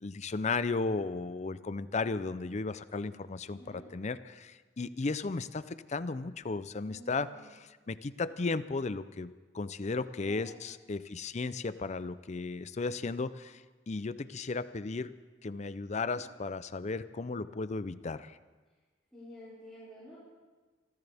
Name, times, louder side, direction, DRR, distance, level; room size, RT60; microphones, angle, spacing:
voice 1, 0.0-13.6 13.9-15.1 15.4-18.4, left 3 dB, 40° left, 14 dB, 0.5 m, -35 dB
voice 2, 6.8-7.4 10.2-10.6 19.1-20.2, left 1 dB, ahead, -12 dB, 5.4 m, -50 dB
26.0 x 14.5 x 3.5 m, 1.3 s
head